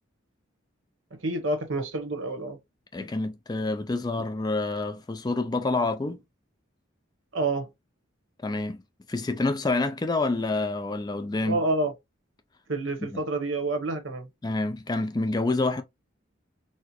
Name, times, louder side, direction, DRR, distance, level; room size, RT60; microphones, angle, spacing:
voice 1, 1.2-2.6 7.3-7.7 11.4-11.9 12.7-14.3, right 2 dB, 75° right, 1.0 m, -28 dB
voice 2, 2.9-6.2 8.4-8.8 9.1-11.6 13.1-13.2 14.4-15.8, left 2 dB, 20° left, 0.3 m, -27 dB
4.2 x 2.0 x 2.9 m
head